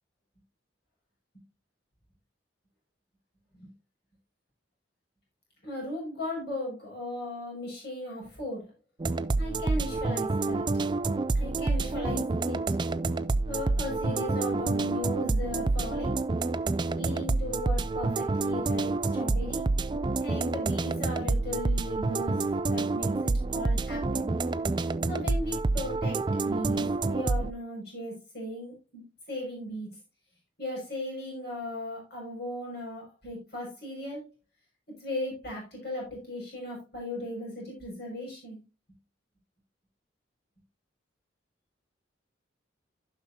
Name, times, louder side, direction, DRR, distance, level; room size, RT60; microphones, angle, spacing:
voice 1, 5.6-8.7 9.4-10.7 11.3-12.6 13.5-16.2 16.9-19.6 20.2-24.3 25.1-29.9 30.6-34.2 35.0-38.6, left 1 dB, 55° left, -2 dB, 5.9 m, -37 dB
sound 1, 9.0-27.5, right 3 dB, 25° right, 0.4 m, -28 dB
15.0 x 5.8 x 2.7 m, 0.28 s
head